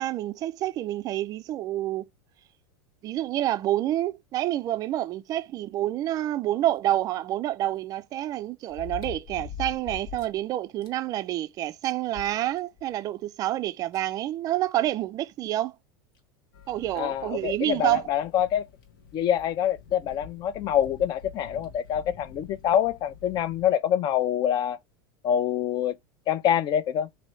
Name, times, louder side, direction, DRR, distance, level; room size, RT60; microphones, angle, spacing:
voice 1, 0.0-2.1 3.0-15.7 16.7-18.0, right 14 dB, 35° right, 0.3 m, -28 dB
sound 1, 6.8-6.9 8.7-10.4 10.8-10.9 11.4-11.5 11.8-12.9 13.9-14.0 15.5-15.6 16.1-16.2 17.0-17.2 18.5-18.6 18.8-18.9 20.6-20.9 21.6-21.7, left 9 dB, 65° left, 1.3 m, -40 dB
sound 2, 16.5-23.7, left 6 dB, 90° left, 1.0 m, -49 dB
voice 2, 17.0-18.7 19.1-24.8 25.2-25.9 26.3-27.1, left 10 dB, 40° left, 0.5 m, -25 dB
3.0 x 2.7 x 4.3 m
supercardioid pair, 135°, 11 cm